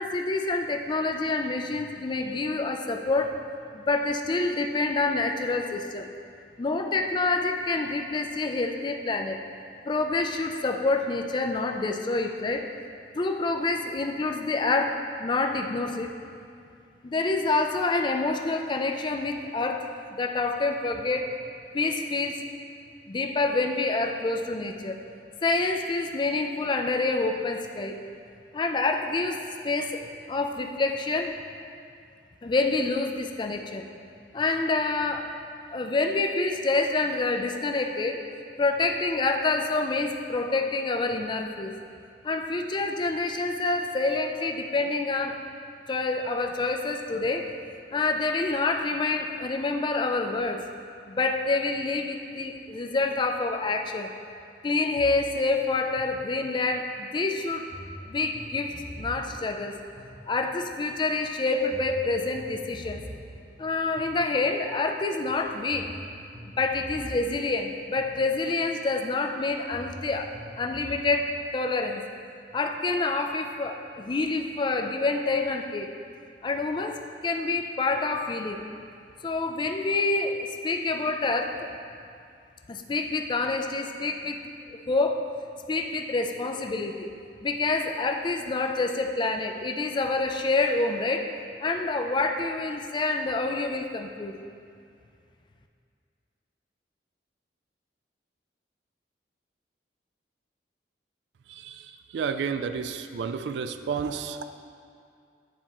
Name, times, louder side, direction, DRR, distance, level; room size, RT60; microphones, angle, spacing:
voice 1, 0.0-3.4 3.7-6.1 6.6-9.4 9.9-12.7 13.1-16.1 17.0-19.9 20.2-21.3 21.7-22.4 23.1-25.0 25.4-28.0 28.5-29.4 29.6-30.0 30.3-31.4 32.4-33.9 34.3-35.4 35.7-38.2 38.6-41.7 42.2-45.4 45.9-47.5 47.9-50.6 51.1-54.1 54.6-57.7 58.1-59.7 60.3-63.0 63.6-65.9 66.6-72.0 72.5-75.9 76.4-78.6 79.2-81.7 82.7-84.4 84.7-85.3 85.7-87.1 87.4-91.3 91.6-94.3, left 3 dB, 25° left, 5 dB, 0.3 m, -27 dB
sound 1, 55.0-56.8 57.7-60.8 61.7-64.8 65.7-68.8 69.7-71.1, equal, 5° right, 0.8 m, -45 dB
voice 2, 101.5-104.5, right 6 dB, 80° right, 9 dB, 0.3 m, -31 dB
9.9 x 4.2 x 2.9 m, 2.4 s
head